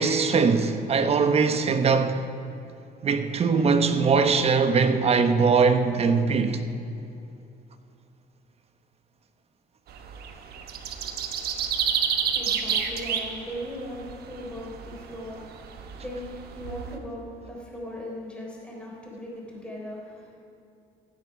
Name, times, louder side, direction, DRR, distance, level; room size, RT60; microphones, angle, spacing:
voice 1, 0.0-2.2 3.0-6.6, right 5 dB, 35° right, 1.0 m, -21 dB
sound 1, 9.9-17.0, right 7 dB, 70° right, 1.1 m, -30 dB
voice 2, 12.2-20.4, equal, 5° left, 3.5 m, -38 dB
15.5 x 9.4 x 5.1 m
cardioid pair, 110°, 17 cm